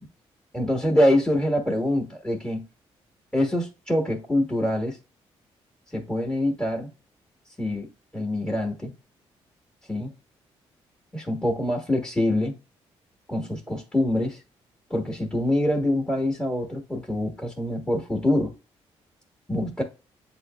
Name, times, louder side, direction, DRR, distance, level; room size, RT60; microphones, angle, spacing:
voice 1, 0.5-2.6 3.3-5.0 5.9-6.9 7.6-8.9 9.9-10.1 11.1-12.5 13.3-14.4 14.9-18.5 19.5-19.8, left 1 dB, 5° left, 1.3 m, -25 dB
8.1 x 2.9 x 2.3 m
supercardioid pair, 50°, 12 cm